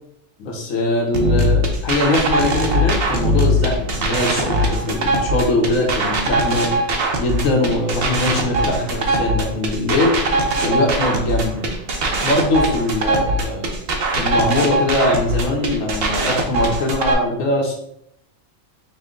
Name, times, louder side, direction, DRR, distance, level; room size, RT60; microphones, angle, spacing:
voice 1, 0.4-6.7 7.2-10.2 10.6-11.7 12.2-13.7 14.1-17.7, left 2 dB, 90° left, -1 dB, 1.3 m, -21 dB
sound 1, 1.1-17.1, right 1 dB, 55° right, 0.9 m, -21 dB
5.4 x 2.2 x 3.7 m, 0.71 s
omnidirectional pair, 1.3 m